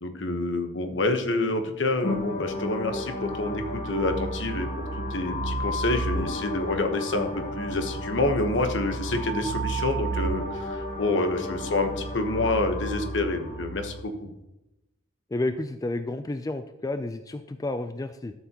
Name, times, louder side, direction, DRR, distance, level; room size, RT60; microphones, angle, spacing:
voice 1, 0.0-4.7 4.9-14.3, left 2 dB, 70° left, 6 dB, 1.1 m, -28 dB
sound 1, 2.0-14.0, equal, 40° left, 1.1 m, -32 dB
voice 2, 15.3-18.3, left 2 dB, 20° left, 9 dB, 0.3 m, -31 dB
12.5 x 6.9 x 2.9 m, 0.93 s
head